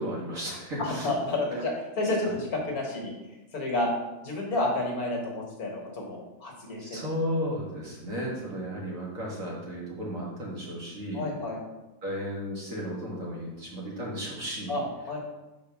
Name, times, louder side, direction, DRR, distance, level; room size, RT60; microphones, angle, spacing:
voice 1, 0.0-1.1 2.3-2.4 6.8-11.3 12.0-14.8, equal, 50° right, -5 dB, 2.0 m, -34 dB
voice 2, 0.8-3.9 4.2-7.0 11.1-11.6 14.7-15.2, left 2 dB, 60° left, -1 dB, 1.7 m, -30 dB
5.2 x 4.0 x 5.9 m, 1.1 s
omnidirectional pair, 1.9 m